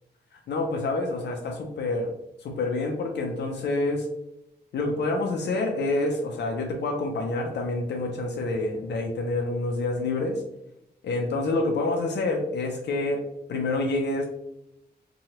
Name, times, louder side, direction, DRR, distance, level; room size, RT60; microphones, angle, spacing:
voice 1, 0.5-2.1 2.4-4.1 4.7-10.4 11.0-13.2 13.5-14.2, left 2 dB, 85° left, 2 dB, 0.4 m, -27 dB
2.9 x 2.2 x 2.8 m, 0.81 s
cardioid pair, 80°, 17 cm